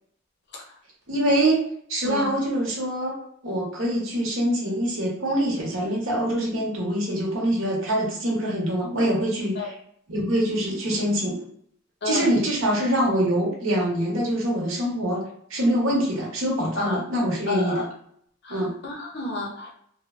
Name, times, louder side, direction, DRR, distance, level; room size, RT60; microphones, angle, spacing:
voice 1, 1.1-1.6 1.9-3.2 3.4-9.6 10.1-11.4 12.0-17.8 18.5-18.7, right 1 dB, 70° right, -3 dB, 0.9 m, -24 dB
voice 2, 2.0-2.3 9.6-9.7 12.0-12.3 16.8-17.0 17.5-17.9 18.4-19.8, left 2 dB, 55° left, 0 dB, 0.6 m, -31 dB
3.1 x 2.1 x 2.4 m, 0.67 s
head